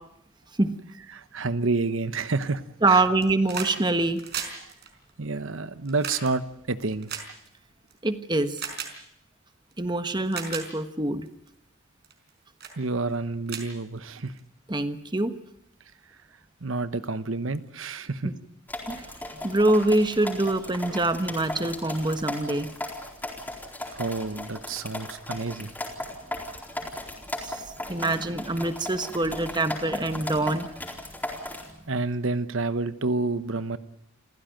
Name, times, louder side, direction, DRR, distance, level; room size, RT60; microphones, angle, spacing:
voice 1, 1.1-3.0 4.6-4.7 5.2-6.4 6.7-7.1 12.8-14.3 16.6-18.3 23.9-25.7 31.9-33.8, right 3 dB, 75° right, 12 dB, 1.0 m, -29 dB
voice 2, 2.8-4.2 8.0-8.6 9.8-11.3 14.7-15.3 18.2-18.3 18.9-19.1 19.4-22.7 27.4-30.7, right 2 dB, 20° right, 10 dB, 1.3 m, -25 dB
sound 1, 3.0-3.8 4.0-7.9 8.6-8.9 9.7-9.8 10.2-10.7 11.3-11.5 12.0-12.3 12.6-12.8 13.1-13.2 13.5-14.4 15.6-15.7, right 7 dB, 55° right, 4.7 m, -36 dB
sound 2, 18.7-31.7, left 1 dB, 10° left, 4.2 m, -36 dB
28.0 x 15.5 x 9.1 m, 0.77 s
head